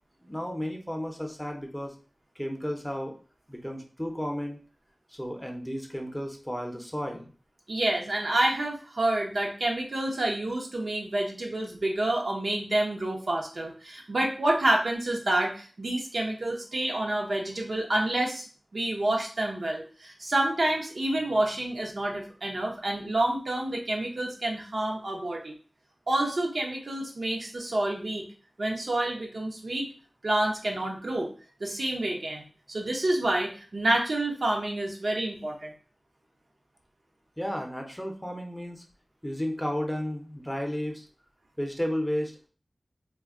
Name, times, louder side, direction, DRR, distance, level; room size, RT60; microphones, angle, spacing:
voice 1, 0.2-1.9 2.4-3.1 3.5-4.6 5.1-7.3 37.4-38.8 39.2-41.0 41.6-42.5, equal, 10° left, 2 dB, 0.6 m, -33 dB
voice 2, 7.7-18.5 18.7-25.6 26.1-28.2 28.6-29.9 30.2-31.3 31.6-32.4 32.7-35.7, right 1 dB, 75° right, -1 dB, 0.7 m, -28 dB
2.2 x 2.1 x 3.6 m, 0.39 s
wide cardioid pair, 45°, 0 cm